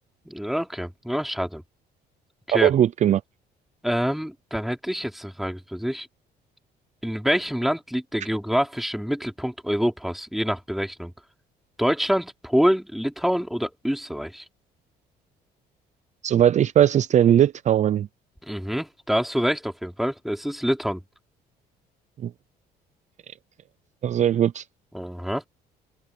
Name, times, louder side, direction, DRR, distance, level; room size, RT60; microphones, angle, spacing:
voice 1, 0.3-1.6 2.5-2.7 3.8-6.1 7.0-11.1 11.8-14.5 18.5-21.0 24.9-25.4, equal, ahead, 3.6 m, -26 dB
voice 2, 2.5-3.2 16.2-18.1 22.2-22.3 24.0-24.6, right 10 dB, 45° right, 0.5 m, -19 dB
open air
cardioid pair, 110°, 17 cm